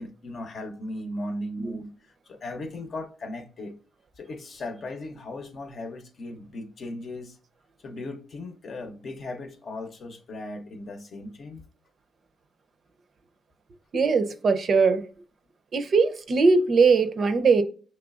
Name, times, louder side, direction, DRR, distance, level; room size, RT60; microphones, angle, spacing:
voice 1, 0.0-3.8 4.2-7.4 7.8-11.6, left 1 dB, 50° left, 0.8 m, -37 dB
voice 2, 13.9-15.0 15.7-17.6, right 4 dB, 50° right, 0.5 m, -20 dB
6.0 x 3.2 x 2.4 m
cardioid pair, 95°, 0 cm